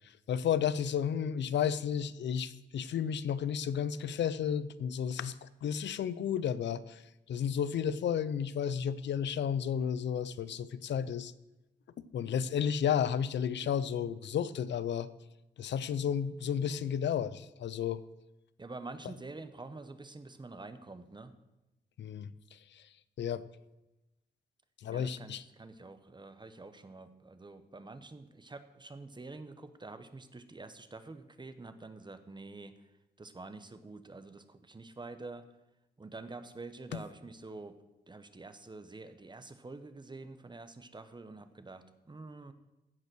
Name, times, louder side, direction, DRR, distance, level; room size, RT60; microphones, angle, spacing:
voice 1, 0.3-7.0 7.3-11.3 12.1-15.1 15.6-18.0 22.0-22.8 23.2-23.4 24.8-25.4 36.9-37.0, left 8 dB, 80° left, 16 dB, 0.5 m, -32 dB
voice 2, 18.6-21.3 24.9-32.7 33.2-35.4 36.0-37.8 38.1-42.5, right 3 dB, 25° right, 11 dB, 0.9 m, -47 dB
15.0 x 5.4 x 6.2 m, 0.98 s
cardioid pair, 70°, 18 cm